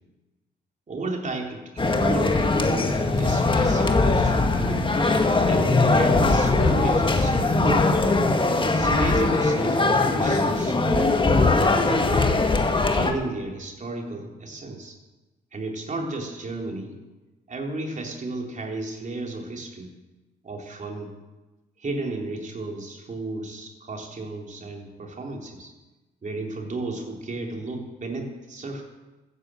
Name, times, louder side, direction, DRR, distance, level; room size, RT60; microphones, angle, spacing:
voice 1, 0.9-4.9 5.5-8.0 8.6-15.0 15.5-17.0 17.5-19.9 20.4-21.1 21.8-25.7 26.2-28.8, right 2 dB, 40° right, 1 dB, 3.6 m, -33 dB
sound 1, 1.8-13.1, left 3 dB, 25° left, 1.9 m, -21 dB
13.5 x 9.6 x 7.6 m, 1.1 s
supercardioid pair, 60°, 19 cm